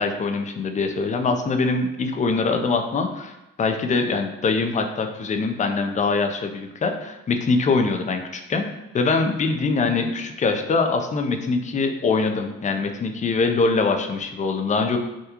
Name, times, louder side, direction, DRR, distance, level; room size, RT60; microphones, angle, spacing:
voice 1, 0.0-8.7 8.9-15.0, left 4 dB, 25° left, 5 dB, 0.4 m, -23 dB
3.6 x 2.3 x 2.8 m, 0.97 s
cardioid pair, 90°, 30 cm